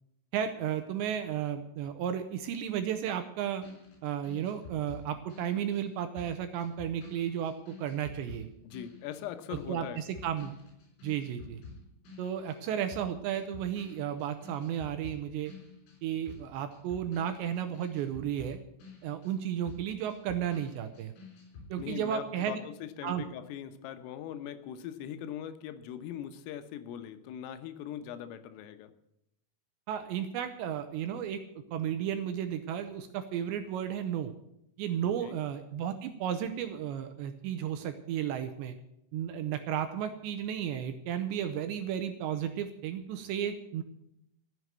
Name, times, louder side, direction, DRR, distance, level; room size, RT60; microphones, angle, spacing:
voice 1, 0.3-3.6 4.0-8.5 9.5-10.5 11.0-11.6 12.2-15.5 16.0-18.6 19.0-21.1 21.7-22.6 23.0-23.2 29.9-31.4 31.7-34.3 34.8-38.8 39.1-43.8, right 9 dB, 80° right, 8 dB, 2.8 m, -33 dB
sound 1, 3.6-12.6 12.9-21.8, left 3 dB, 65° left, 6.0 m, -50 dB
voice 2, 8.6-10.0 21.8-28.9 35.0-35.4, left 10 dB, 85° left, 10 dB, 3.6 m, -41 dB
14.5 x 7.6 x 9.3 m, 0.80 s
omnidirectional pair, 5.8 m